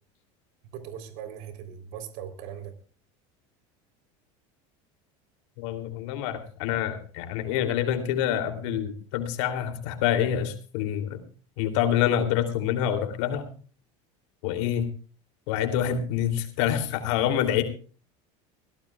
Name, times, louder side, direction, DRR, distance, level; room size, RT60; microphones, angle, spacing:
voice 1, 0.7-2.7 17.3-17.4, right 9 dB, 70° right, 7 dB, 3.6 m, -39 dB
voice 2, 5.6-11.2 11.6-13.5 14.4-14.8 15.5-17.6, left 10 dB, 75° left, 7 dB, 2.9 m, -26 dB
22.5 x 17.0 x 2.4 m, 0.38 s
supercardioid pair, 135°, 16 cm